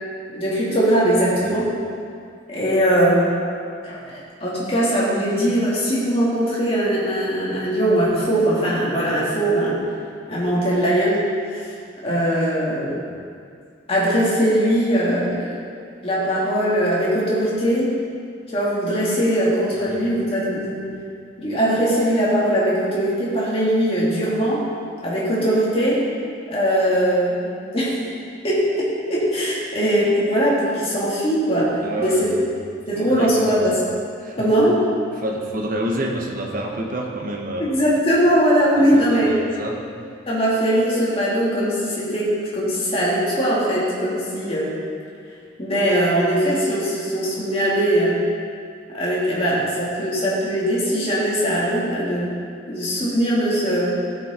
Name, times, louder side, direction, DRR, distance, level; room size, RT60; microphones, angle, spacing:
voice 1, 0.3-1.7 2.5-3.3 3.8-9.8 10.3-11.3 11.5-11.7 12.0-13.0 13.9-15.6 16.0-17.9 18.5-20.9 21.4-24.6 25.0-26.0 26.5-28.0 28.4-32.2 32.9-33.8 34.4-34.8 37.6-39.4 40.3-44.7 45.6-48.2 48.9-52.3 52.7-54.0, equal, 30° left, -7 dB, 2.4 m, -20 dB
voice 2, 31.8-32.4 32.9-33.7 34.2-34.5 35.2-37.7 38.8-39.8, right 1 dB, 45° right, 0 dB, 1.1 m, -28 dB
13.0 x 6.3 x 4.4 m, 2.2 s
head